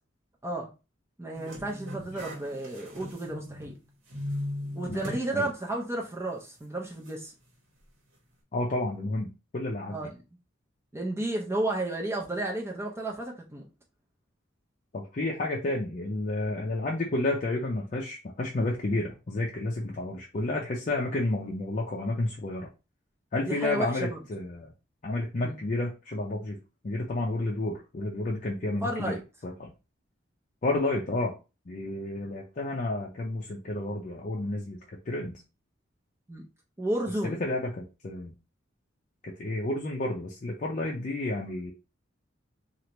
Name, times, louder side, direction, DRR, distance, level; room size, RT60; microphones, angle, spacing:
voice 1, 1.2-3.7 4.7-7.3 9.9-10.1 10.9-13.7 23.4-24.2 25.4-25.6 28.8-29.2 36.3-36.4 36.8-37.4, right 2 dB, 15° right, 0.5 m, -32 dB
sound 1, 1.3-3.8 4.1-5.3 5.7-5.8 7.1-7.2, left 1 dB, 90° right, 1.2 m, -38 dB
voice 2, 8.5-9.3 9.5-10.1 14.9-22.7 23.3-24.7 25.0-26.6 26.8-29.1 29.4-29.7 30.6-31.3 31.7-34.8 35.1-35.4 37.2-38.3 39.2-41.7, left 2 dB, 40° left, 0.5 m, -31 dB
3.2 x 2.5 x 2.9 m
head